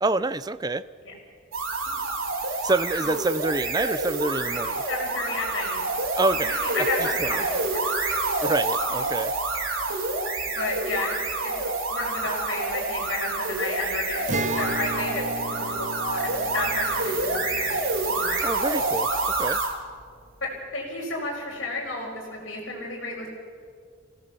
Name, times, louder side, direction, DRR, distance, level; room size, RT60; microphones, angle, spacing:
voice 1, 0.0-0.8 2.6-4.8 6.2-6.9 7.2-7.4 8.4-9.3 18.4-19.1 19.4-19.6, right 2 dB, 20° right, 15 dB, 0.5 m, -27 dB
sound 1, 1.5-19.8, right 3 dB, 80° right, 3.1 m, -28 dB
voice 2, 4.9-5.8 6.5-7.9 10.5-11.2 11.4-11.5 11.9-15.2 15.5-17.8 18.1-18.4 20.4-23.3, left 2 dB, 60° left, -7 dB, 4.6 m, -32 dB
Acoustic guitar, 14.3-19.8, right 2 dB, 35° right, 1.0 m, -35 dB
27.5 x 16.5 x 6.9 m, 2.1 s
head